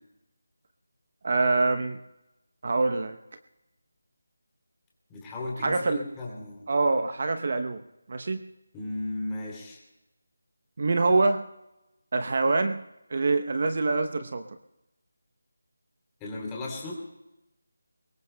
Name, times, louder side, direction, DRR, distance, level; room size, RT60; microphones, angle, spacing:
voice 1, 1.2-2.0 2.6-3.2 5.6-6.0 6.7-7.8 8.1-8.4 10.8-11.4 12.1-12.8 13.1-14.4, right 3 dB, 45° right, 8 dB, 0.8 m, -25 dB
voice 2, 5.1-6.6 8.7-9.8 16.2-17.0, left 2 dB, 10° left, -4 dB, 3.0 m, -35 dB
23.0 x 21.0 x 2.2 m, 0.94 s
figure-of-eight pair, 170°, 0 cm